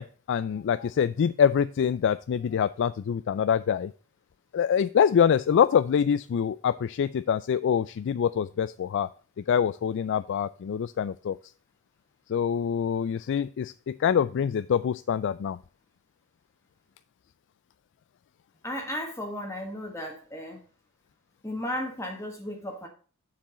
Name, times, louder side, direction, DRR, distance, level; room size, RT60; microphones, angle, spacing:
voice 1, 0.0-3.9 4.5-9.1 9.5-11.4 12.3-15.6, left 8 dB, 55° left, 14 dB, 0.3 m, -25 dB
voice 2, 18.6-20.6 21.4-22.9, left 1 dB, 15° left, 2 dB, 1.3 m, -34 dB
7.3 x 6.9 x 3.8 m, 0.39 s
head